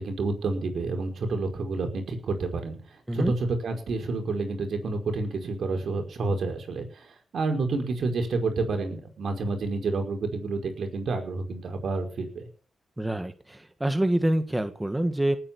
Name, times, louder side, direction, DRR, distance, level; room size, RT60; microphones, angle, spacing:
voice 1, 0.0-12.5, right 3 dB, 70° right, 4 dB, 5.1 m, -29 dB
voice 2, 13.0-15.4, right 1 dB, 15° right, 8 dB, 1.7 m, -26 dB
19.0 x 8.8 x 7.2 m, 0.41 s
cardioid pair, 70°, 0 cm